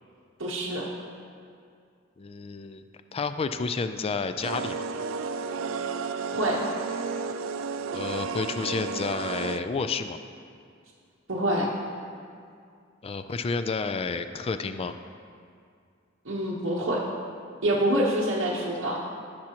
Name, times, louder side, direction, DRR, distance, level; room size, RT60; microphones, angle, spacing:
voice 1, 0.4-0.9 6.3-6.6 11.3-11.7 16.2-17.0 17.6-19.0, right 1 dB, 70° right, -6 dB, 1.1 m, -26 dB
voice 2, 2.2-2.8 3.1-4.8 7.9-10.2 13.0-14.9, left 4 dB, 30° left, 10 dB, 0.3 m, -30 dB
sound 1, 4.4-9.6, right 5 dB, 90° right, 0.4 m, -32 dB
16.5 x 6.0 x 2.9 m, 2.3 s
head